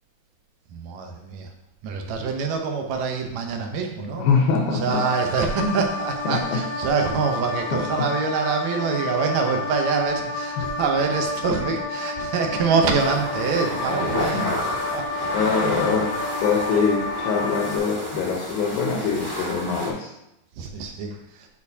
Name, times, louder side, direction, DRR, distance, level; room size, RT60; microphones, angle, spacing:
voice 1, 0.7-1.5 1.8-4.3 4.7-15.3 20.6-21.5, right 5 dB, 70° right, 3 dB, 1.8 m, -25 dB
voice 2, 4.2-5.0 5.6-5.8 6.3-6.6 7.7-7.8 14.3-14.5 15.3-16.1 16.4-20.1, left 5 dB, 90° left, -1 dB, 2.7 m, -23 dB
sound 1, 4.9-17.8, left 3 dB, 40° left, 1.1 m, -30 dB
sound 2, 13.0-19.9, equal, 20° left, 0.6 m, -30 dB
10.5 x 4.4 x 2.8 m, 0.85 s
omnidirectional pair, 4.0 m